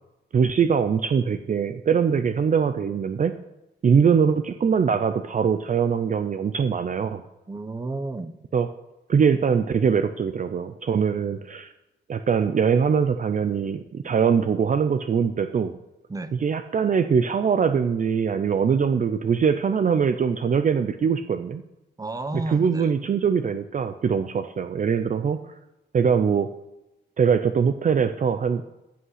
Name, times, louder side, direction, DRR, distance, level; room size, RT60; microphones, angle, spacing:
voice 1, 0.3-3.3 3.8-7.2 8.5-8.7 9.1-11.7 12.1-15.8 16.4-21.6 22.5-25.4 25.9-26.5 27.2-28.6, right 6 dB, 45° right, 9 dB, 0.5 m, -22 dB
voice 2, 7.5-8.3 16.1-16.3 22.0-22.9, right 2 dB, 20° right, 10 dB, 0.9 m, -32 dB
16.0 x 5.7 x 5.8 m, 0.95 s
wide cardioid pair, 130°, 19 cm